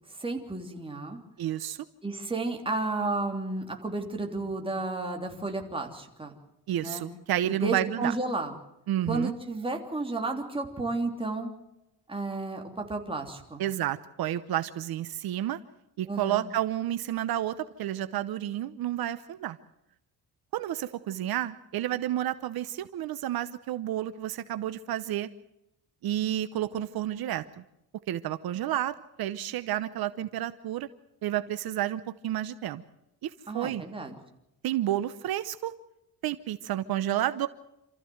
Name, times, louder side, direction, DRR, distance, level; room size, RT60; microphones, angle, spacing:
voice 1, 0.2-1.2 2.0-6.3 6.8-7.0 7.4-8.5 9.1-11.5 12.1-12.6 12.9-13.6 16.1-16.5 33.5-34.1, right 3 dB, 15° right, 2 dB, 3.2 m, -32 dB
voice 2, 1.4-1.8 6.7-8.1 8.9-9.3 13.6-15.6 16.0-19.6 20.5-25.3 26.0-27.4 28.1-30.9 31.2-32.8 33.2-33.8 34.6-35.7 36.2-37.5, right 12 dB, 70° right, 13 dB, 0.9 m, -30 dB
28.0 x 14.5 x 7.8 m, 0.90 s
cardioid pair, 140°, 38 cm